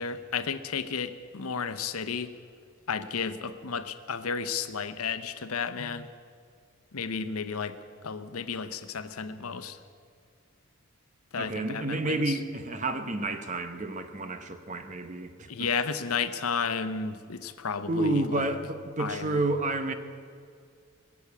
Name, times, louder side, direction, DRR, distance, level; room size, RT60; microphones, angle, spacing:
voice 1, 0.0-2.3 2.9-6.1 6.9-7.8 8.0-9.8 11.3-12.4 15.5-18.5 19.0-19.4, left 5 dB, 85° left, 11 dB, 0.8 m, -32 dB
voice 2, 11.4-15.7 17.9-19.9, right 2 dB, 35° right, 9 dB, 0.9 m, -30 dB
21.0 x 7.2 x 8.4 m, 2.2 s
head